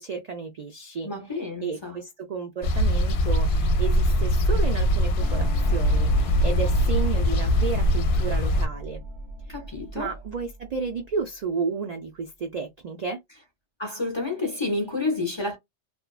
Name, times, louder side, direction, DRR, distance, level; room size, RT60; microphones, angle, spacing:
voice 1, 0.0-9.0 9.9-13.2, right 5 dB, 60° right, 0.4 m, -32 dB
voice 2, 1.0-2.0 9.5-10.1 13.8-15.6, left 3 dB, 35° left, 0.5 m, -29 dB
sound 1, 2.6-8.7, equal, 70° left, 0.8 m, -22 dB
sound 2, 5.2-11.3, right 1 dB, 85° right, 1.2 m, -37 dB
2.5 x 2.2 x 2.3 m
omnidirectional pair, 1.2 m